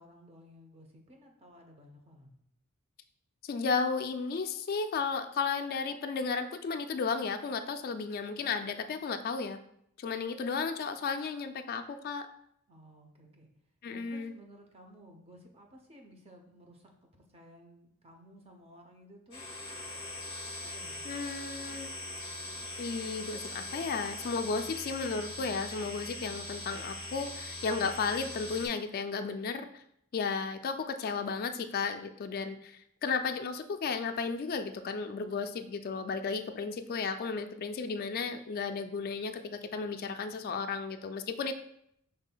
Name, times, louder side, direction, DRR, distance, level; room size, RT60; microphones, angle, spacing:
voice 1, 0.0-2.3 12.7-13.5 13.9-19.5 20.6-21.0, equal, 25° right, 2 dB, 0.7 m, -55 dB
voice 2, 3.4-9.6 10.0-12.3 13.8-14.3 21.1-21.9 22.8-29.8 30.1-41.5, left 5 dB, 45° left, 7 dB, 0.3 m, -34 dB
sound 1, 19.3-28.7, left 1 dB, 25° left, 1.4 m, -41 dB
7.2 x 3.3 x 2.2 m, 0.72 s
head